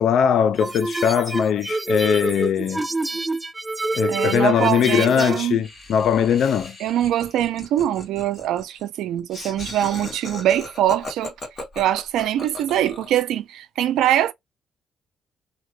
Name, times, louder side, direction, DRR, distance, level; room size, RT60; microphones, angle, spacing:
voice 1, 0.0-2.8 3.9-6.8, left 8 dB, 70° left, 0.5 m, -20 dB
sound 1, 0.6-5.5, right 2 dB, 15° right, 0.3 m, -27 dB
voice 2, 4.1-5.6 6.8-11.3 11.8-14.3, right 11 dB, 85° right, 0.4 m, -23 dB
Laughter, 5.6-13.2, left 2 dB, 35° left, 1.4 m, -38 dB
2.8 x 2.2 x 3.1 m
cardioid pair, 90°, 0 cm